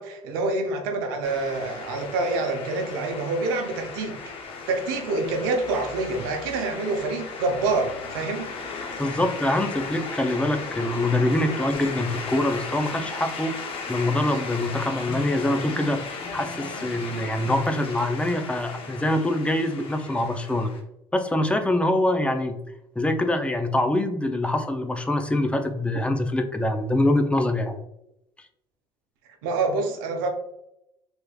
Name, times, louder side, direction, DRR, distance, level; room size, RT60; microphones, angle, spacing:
voice 1, 0.0-4.2 4.7-8.5 29.4-30.3, right 3 dB, 90° right, 4 dB, 0.6 m, -26 dB
sound 1, 1.2-20.8, left 4 dB, 55° left, 0.7 m, -36 dB
voice 2, 9.0-13.5 13.9-16.0 16.3-20.7 21.1-22.6 23.0-27.8, left 1 dB, 10° left, 6 dB, 0.5 m, -24 dB
3.4 x 3.1 x 2.3 m, 0.84 s
supercardioid pair, 85°, 11 cm